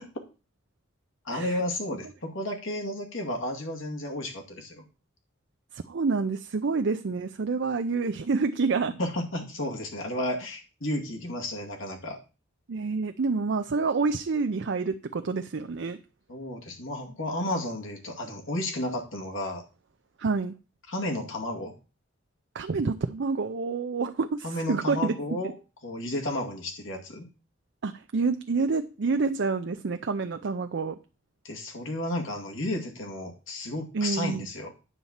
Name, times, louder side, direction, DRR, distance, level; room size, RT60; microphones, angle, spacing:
voice 1, 1.3-4.8 9.0-12.2 16.3-19.6 20.9-21.8 24.4-25.5 25.8-27.2 31.4-34.7, left 1 dB, 85° left, 1 dB, 2.3 m, -32 dB
voice 2, 5.7-8.9 12.7-16.0 20.2-20.5 22.5-25.1 27.8-31.0 33.9-34.5, right 4 dB, 65° right, 8 dB, 0.5 m, -28 dB
9.5 x 4.1 x 7.2 m, 0.32 s
head